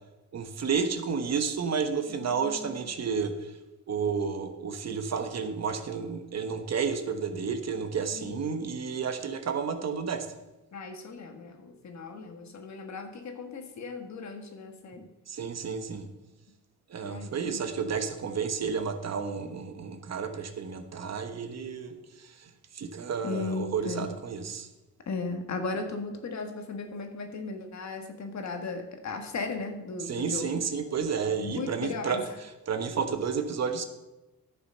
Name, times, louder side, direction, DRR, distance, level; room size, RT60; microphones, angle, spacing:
voice 1, 0.3-3.5 3.9-10.3 15.3-16.1 16.9-24.7 30.0-33.8, right 6 dB, 50° right, 8 dB, 1.1 m, -31 dB
voice 2, 2.1-2.8 8.1-8.7 10.7-15.1 17.0-17.7 19.4-19.5 23.2-24.1 25.1-30.5 31.3-32.2, left 3 dB, 55° left, 5 dB, 1.6 m, -37 dB
11.0 x 6.8 x 5.5 m, 1.0 s
cardioid pair, 95°, 34 cm